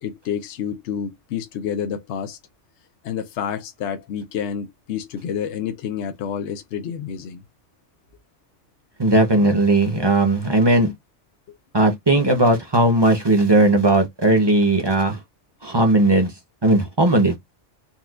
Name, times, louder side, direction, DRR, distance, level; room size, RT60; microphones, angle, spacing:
voice 1, 0.0-2.4 3.0-7.4, left 8 dB, 70° left, 0.9 m, -29 dB
voice 2, 9.0-10.9 11.7-15.2 15.6-16.3 16.6-17.4, right 2 dB, 25° right, 0.7 m, -17 dB
4.1 x 2.3 x 2.4 m
omnidirectional pair, 1.2 m